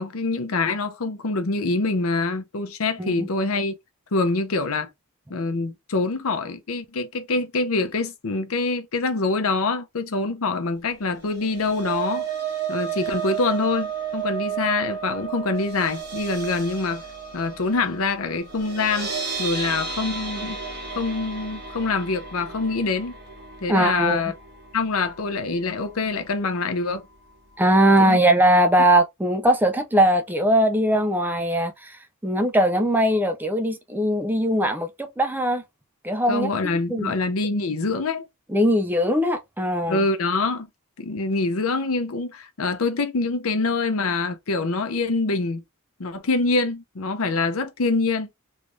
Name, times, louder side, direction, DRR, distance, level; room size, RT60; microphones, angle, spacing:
voice 1, 0.0-3.8 4.1-4.9 5.3-12.3 12.7-17.0 17.3-19.1 19.4-20.6 20.9-23.1 23.6-24.3 24.7-27.0 28.0-28.2 36.3-38.3 39.9-40.7 41.0-45.6 46.0-48.3, left 3 dB, 70° left, 0.7 m, -25 dB
sound 1, 11.2-25.4 25.8-26.0 26.3-26.4, right 6 dB, 50° right, 1.5 m, -33 dB
voice 2, 23.7-24.2 27.6-32.0 32.2-35.6 36.0-36.5 36.9-37.1 38.5-40.0, right 1 dB, 10° right, 0.4 m, -20 dB
3.2 x 2.6 x 3.1 m
head